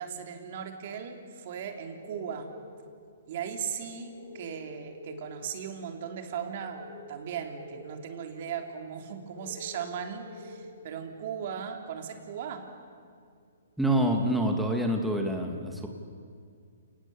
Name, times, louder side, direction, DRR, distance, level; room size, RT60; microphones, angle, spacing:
voice 1, 0.0-2.5 3.3-12.7, right 7 dB, 50° right, 4 dB, 3.2 m, -37 dB
sound 1, 1.9-12.9 13.4-13.5, equal, 70° left, 6.5 m, -49 dB
voice 2, 13.8-15.9, right 1 dB, ahead, 1 dB, 2.1 m, -26 dB
30.0 x 19.0 x 7.1 m, 2.3 s
hypercardioid pair, 140°, 0 cm